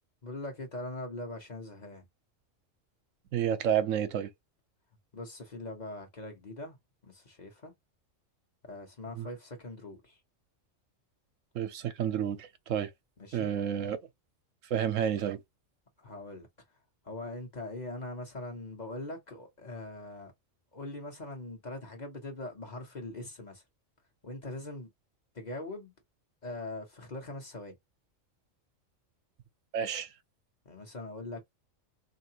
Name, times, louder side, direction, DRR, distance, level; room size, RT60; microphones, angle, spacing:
voice 1, 0.2-2.0 5.1-6.8 7.0-7.7 8.6-10.2 13.2-13.5 16.0-16.5 17.0-20.3 20.7-23.6 24.2-24.9 25.3-25.9 26.4-27.8 30.6-31.5, left 2 dB, 35° left, 1.1 m, -41 dB
voice 2, 3.3-4.3 9.2-9.3 11.5-12.9 13.3-14.0 14.7-15.4 29.7-30.1, right 9 dB, 80° right, 1.0 m, -30 dB
4.2 x 2.9 x 2.8 m
omnidirectional pair, 1.3 m